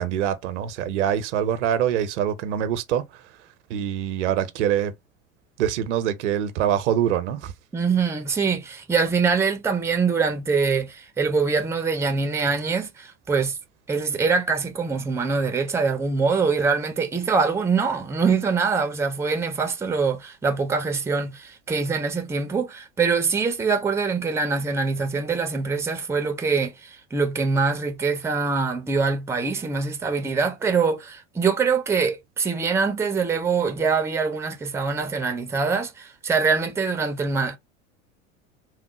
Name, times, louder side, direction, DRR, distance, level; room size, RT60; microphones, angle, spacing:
voice 1, 0.0-3.2 3.7-4.9 5.6-7.5, right 10 dB, 70° right, 0.7 m, -24 dB
voice 2, 7.7-13.6 13.9-37.6, right 5 dB, 5° right, 0.5 m, -24 dB
3.1 x 2.0 x 2.9 m
hypercardioid pair, 80°, 36 cm